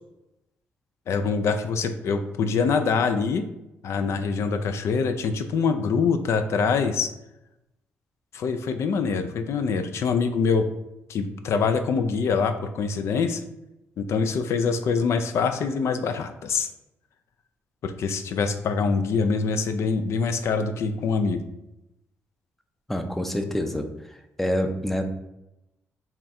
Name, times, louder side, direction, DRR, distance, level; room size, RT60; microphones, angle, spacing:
voice 1, 1.1-3.4 3.8-7.1 8.3-10.7 11.1-13.4 14.0-16.7 17.8-21.4, left 5 dB, 65° left, 8 dB, 0.3 m, -24 dB
voice 2, 22.9-23.9 24.4-25.0, left 1 dB, 5° left, 6 dB, 0.4 m, -26 dB
3.6 x 2.2 x 4.1 m, 0.90 s
cardioid pair, 85°, 5 cm